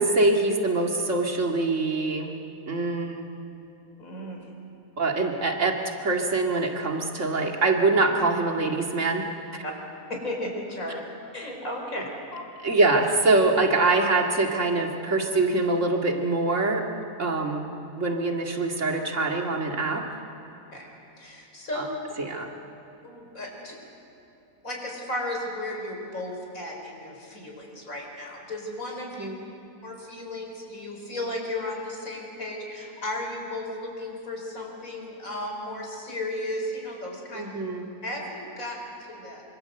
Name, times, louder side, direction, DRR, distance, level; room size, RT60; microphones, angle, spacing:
voice 1, 0.0-2.3 2.7-3.2 5.0-5.8 6.0-9.3 12.6-16.8 17.2-17.7 18.0-20.0 21.8-21.9 22.2-22.5 29.2-29.5 37.3-37.9, right 3 dB, 60° right, 1 dB, 2.5 m, -24 dB
voice 2, 4.0-4.5 9.6-9.7 10.1-11.0 11.3-12.5 20.7-20.9 21.2-21.9 23.0-23.8 24.6-29.3 29.8-37.5 38.0-39.4, left 1 dB, 70° left, 1 dB, 5.2 m, -34 dB
25.5 x 25.5 x 7.9 m, 3.0 s
omnidirectional pair, 1.5 m